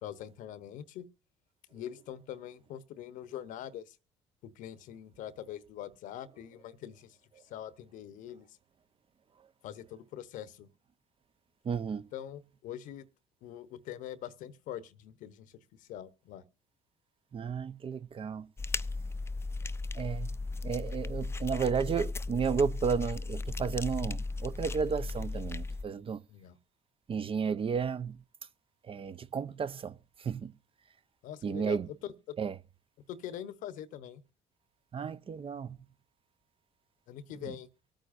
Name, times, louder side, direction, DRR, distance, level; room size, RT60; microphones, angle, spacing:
voice 1, 0.0-1.1 1.7-4.0 4.4-7.2 7.4-8.6 9.6-10.7 12.1-13.1 13.4-16.4 26.3-26.6 31.2-31.8 33.1-34.2 37.1-37.7, left 10 dB, 75° left, 1.0 m, -43 dB
voice 2, 11.6-12.1 17.3-18.5 19.9-20.4 20.6-26.2 27.1-28.2 28.8-30.5 31.4-31.9 32.4-32.6 34.9-35.8 37.4-37.5, right 6 dB, 40° right, 0.8 m, -33 dB
sound 1, 18.6-25.8, left 3 dB, 20° left, 0.6 m, -36 dB
24.0 x 9.0 x 2.6 m
supercardioid pair, 60°, 14 cm